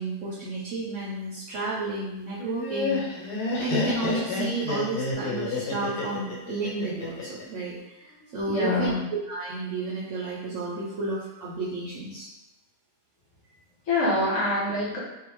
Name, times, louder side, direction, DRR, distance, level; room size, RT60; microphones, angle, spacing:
voice 1, 0.0-8.9 9.3-12.3, right 3 dB, 70° right, -6 dB, 0.7 m, -32 dB
Laughter, 2.4-7.4, left 3 dB, 90° left, 1.2 m, -29 dB
voice 2, 8.5-9.1 13.9-15.0, left 2 dB, 60° left, -6 dB, 1.0 m, -25 dB
2.7 x 2.0 x 3.0 m, 0.95 s
omnidirectional pair, 1.7 m